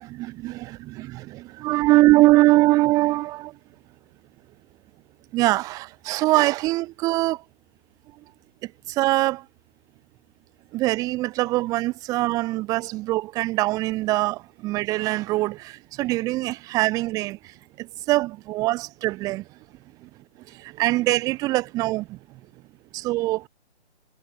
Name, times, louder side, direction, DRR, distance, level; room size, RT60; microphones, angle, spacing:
voice 1, 0.0-3.6 5.3-7.4 8.6-9.5 10.7-19.4 20.5-22.2 22.9-23.5, right 18 dB, 10° right, 1.7 m, -23 dB
hypercardioid pair, 175°, 34 cm